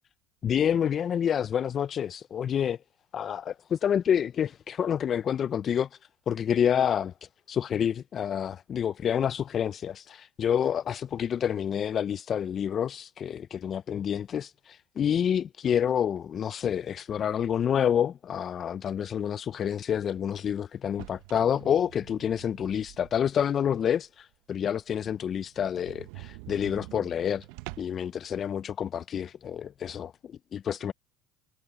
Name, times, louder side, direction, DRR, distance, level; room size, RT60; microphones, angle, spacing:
voice 1, 0.4-2.8 3.1-6.0 6.3-27.5 27.8-30.9, left 8 dB, 35° left, 0.3 m, -28 dB
sound 1, 20.8-23.4 23.8-23.9 24.3-24.4 24.7-24.8 25.0-25.1 25.5-28.1, right 22 dB, 75° right, 0.6 m, -46 dB
supercardioid pair, 115°, 0 cm